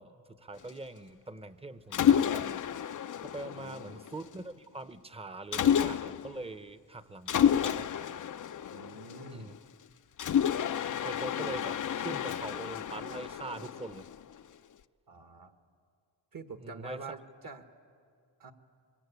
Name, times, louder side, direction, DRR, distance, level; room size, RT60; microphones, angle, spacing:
voice 1, 0.0-7.9 9.3-9.5 10.7-14.1 16.6-17.2, right 2 dB, 15° right, 12 dB, 1.0 m, -43 dB
Mechanisms, 1.9-4.3 5.5-6.4 7.3-9.6 10.2-14.4, left 9 dB, 45° left, 0.6 m, -30 dB
voice 2, 3.6-4.0 8.7-9.6 15.1-15.5 16.3-17.2 17.4-17.7 18.4-18.5, right 4 dB, 50° right, 7 dB, 1.8 m, -46 dB
24.5 x 22.5 x 8.5 m, 2.3 s
cardioid pair, 75°, 43 cm